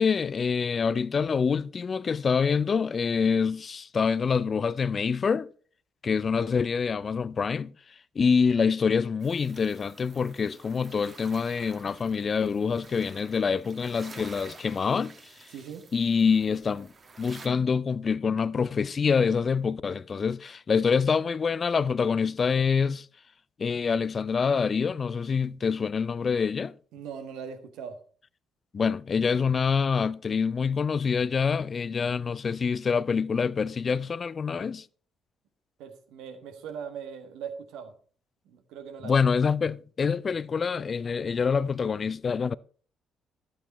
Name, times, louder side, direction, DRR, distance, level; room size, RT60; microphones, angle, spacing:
voice 1, 0.0-5.5 6.0-7.7 8.2-15.1 15.9-16.9 17.2-23.1 23.6-26.7 28.7-34.8 39.0-42.5, left 5 dB, 40° left, 0.4 m, -26 dB
sound 1, 9.2-17.5, right 4 dB, 40° right, 1.6 m, -51 dB
voice 2, 15.5-15.9 26.9-28.0 35.8-37.9 38.4-39.2, right 7 dB, 70° right, 1.5 m, -40 dB
11.5 x 8.8 x 4.2 m
hypercardioid pair, 45°, 0 cm